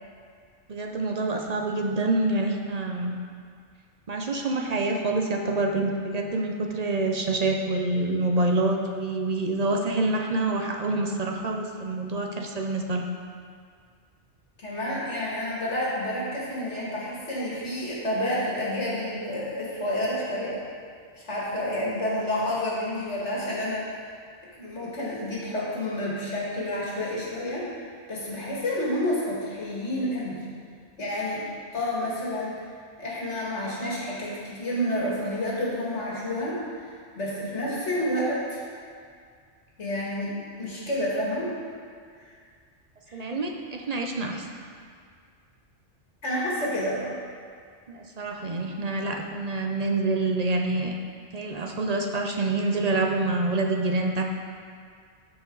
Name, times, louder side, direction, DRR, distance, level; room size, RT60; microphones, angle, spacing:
voice 1, 0.7-3.2 4.1-13.0 43.1-44.4 47.9-50.9 51.3-54.2, right 2 dB, 40° right, 2 dB, 0.7 m, -27 dB
voice 2, 14.6-20.5 21.2-23.9 24.6-27.7 28.1-30.4 31.0-32.6 33.0-38.6 39.8-41.5 42.2-42.3 43.1-43.2 46.2-47.1 48.6-48.7, left 1 dB, 75° left, -6 dB, 2.3 m, -29 dB
13.0 x 5.0 x 3.9 m, 2.1 s
omnidirectional pair, 1.2 m